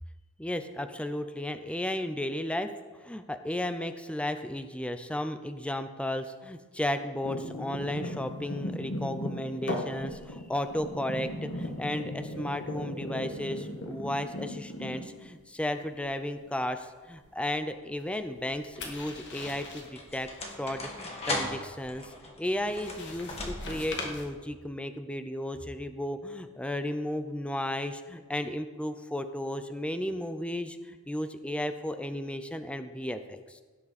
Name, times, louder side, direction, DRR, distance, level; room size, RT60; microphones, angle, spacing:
voice 1, 0.4-2.7 3.0-20.3 20.6-22.1 22.4-33.6, left 1 dB, 5° left, 9 dB, 0.6 m, -34 dB
sound 1, 7.2-15.4 15.7-16.1 18.4-19.9 22.5-24.2, left 1 dB, 55° left, 1.7 m, -38 dB
sound 2, 17.2-17.7 18.5-24.0, left 2 dB, 30° left, 1.9 m, -38 dB
16.5 x 9.6 x 4.2 m, 1.4 s
head